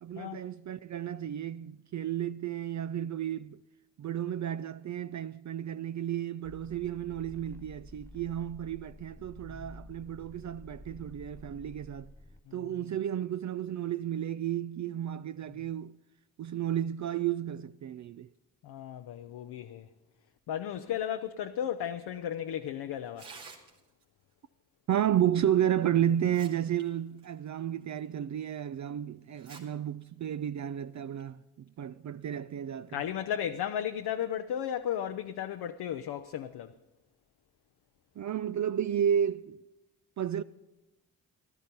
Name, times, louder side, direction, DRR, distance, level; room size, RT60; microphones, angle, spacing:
voice 1, 0.0-3.6 4.0-12.1 12.5-15.9 16.4-18.3 24.9-33.0 38.2-39.6 40.2-40.4, right 10 dB, 45° right, 0.4 m, -32 dB
sound 1, 6.4-12.4, left 1 dB, 5° left, 0.5 m, -50 dB
voice 2, 18.6-19.9 20.5-23.3 32.9-36.7, left 9 dB, 65° left, 0.7 m, -35 dB
Tearing, 23.0-24.0 25.5-25.6 26.1-26.8 27.2-27.3 28.0-28.1 29.3-29.6 30.0-30.1 30.9-31.2, right 4 dB, 75° right, 2.5 m, -50 dB
14.5 x 12.0 x 5.3 m
hypercardioid pair, 40°, 42 cm